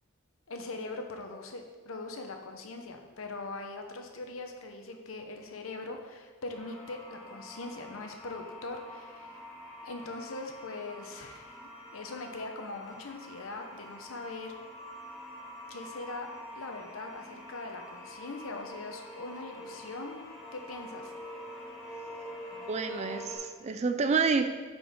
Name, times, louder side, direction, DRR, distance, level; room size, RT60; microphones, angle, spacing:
voice 1, 0.5-9.4 9.8-11.6 11.9-14.5 15.7-16.3 16.6-20.2 20.5-21.1, left 3 dB, 80° left, 4 dB, 0.8 m, -41 dB
sound 1, 6.5-23.4, equal, ahead, 1.8 m, -46 dB
voice 2, 22.7-24.5, right 4 dB, 30° right, 8 dB, 0.3 m, -28 dB
9.3 x 4.5 x 3.6 m, 1.4 s
head